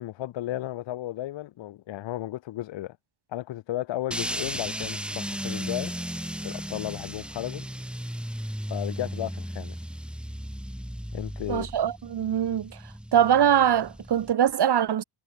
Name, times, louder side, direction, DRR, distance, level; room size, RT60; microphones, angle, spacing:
voice 1, 0.0-3.0 3.3-6.0 6.4-7.7 8.7-9.8 11.1-11.7, left 14 dB, 70° left, 0.8 m, -34 dB
sound 1, 4.1-14.3, equal, ahead, 1.7 m, -35 dB
voice 2, 11.5-12.8 13.1-15.0, right 9 dB, 55° right, 1.7 m, -22 dB
cardioid pair, 120°, 47 cm